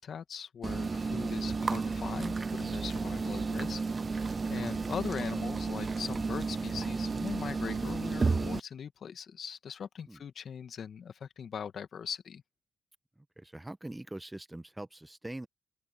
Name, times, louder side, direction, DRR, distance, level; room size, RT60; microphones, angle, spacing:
voice 1, 0.0-3.8 4.1-12.4, left 7 dB, 65° left, 1.8 m, -41 dB
sound 1, 0.6-8.6, right 4 dB, 40° right, 0.5 m, -32 dB
voice 2, 13.4-15.5, right 1 dB, 15° right, 1.5 m, -43 dB
hypercardioid pair, 40°, 0 cm